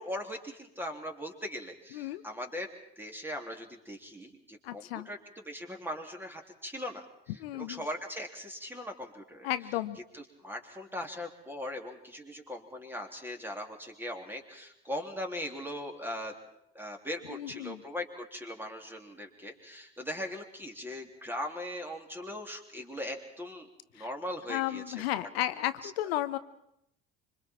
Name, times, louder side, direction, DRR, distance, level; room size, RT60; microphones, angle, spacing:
voice 1, 0.0-2.7 3.0-7.0 7.5-9.5 10.1-16.3 16.7-25.3 25.8-25.9, left 1 dB, 5° right, 3 dB, 3.3 m, -40 dB
voice 2, 1.9-2.2 4.6-5.1 7.4-7.8 9.4-10.0 17.3-17.8 24.0-24.1 24.5-26.4, left 14 dB, 70° left, 13 dB, 1.1 m, -33 dB
26.0 x 24.5 x 4.5 m, 0.79 s
hypercardioid pair, 65°, 32 cm